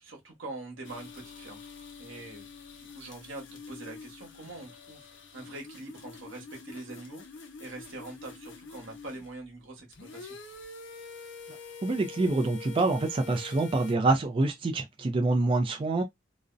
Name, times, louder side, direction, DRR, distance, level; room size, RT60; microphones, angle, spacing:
voice 1, 0.0-1.6 2.0-2.5 2.8-10.4, right 2 dB, 85° right, 1.1 m, -44 dB
sound 1, 0.8-9.4 9.8-13.9, left 4 dB, 65° left, 0.6 m, -46 dB
voice 2, 11.8-16.0, right 2 dB, 30° right, 0.3 m, -26 dB
2.4 x 2.0 x 2.4 m
head